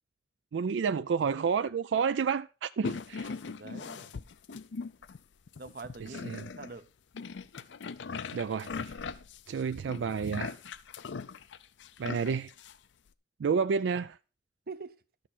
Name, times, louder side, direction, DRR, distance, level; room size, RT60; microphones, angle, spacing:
voice 1, 0.5-3.3 6.0-6.4 8.3-8.9 9.5-10.6 12.0-12.5 13.4-14.2, right 6 dB, 90° right, 0.4 m, -30 dB
sound 1, 2.8-5.2 5.5-6.8 7.1-12.8, left 4 dB, 85° left, 0.5 m, -40 dB
voice 2, 3.5-4.1 5.6-6.9 14.7-15.0, right 4 dB, 55° right, 0.7 m, -44 dB
12.5 x 6.5 x 4.2 m
head